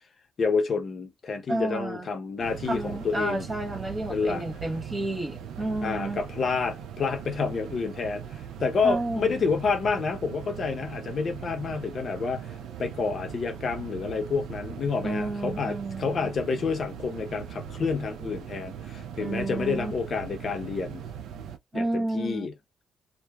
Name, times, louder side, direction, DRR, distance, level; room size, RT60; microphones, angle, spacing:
voice 1, 0.4-3.4 4.1-4.4 5.8-21.0 21.7-22.5, left 5 dB, 45° left, 0.6 m, -29 dB
voice 2, 1.5-2.1 2.7-6.2 8.8-9.5 15.0-16.3 19.2-19.9 21.7-22.5, right 2 dB, 20° right, 0.7 m, -31 dB
sound 1, 2.4-21.6, right 8 dB, 80° right, 0.4 m, -40 dB
2.8 x 2.1 x 2.2 m
cardioid pair, 115°, 0 cm